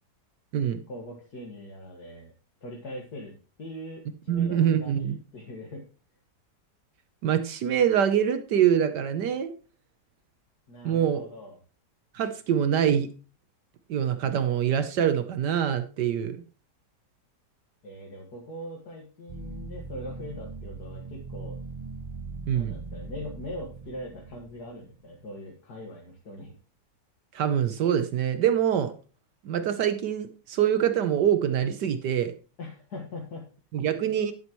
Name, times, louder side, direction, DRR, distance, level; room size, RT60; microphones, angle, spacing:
voice 1, 0.9-2.3 2.6-3.3 3.6-5.9 10.7-11.6 17.8-21.6 22.5-26.5 32.6-33.5, left 1 dB, 65° left, -1 dB, 2.4 m, -41 dB
voice 2, 4.3-5.2 7.2-9.5 10.8-11.2 12.1-13.1 13.9-16.4 22.5-22.8 27.3-28.9 29.4-32.3 33.7-34.3, right 9 dB, 75° right, 9 dB, 1.5 m, -24 dB
sound 1, 19.3-25.0, right 4 dB, 40° right, 0.5 m, -40 dB
11.5 x 10.5 x 3.1 m, 0.35 s
omnidirectional pair, 1.8 m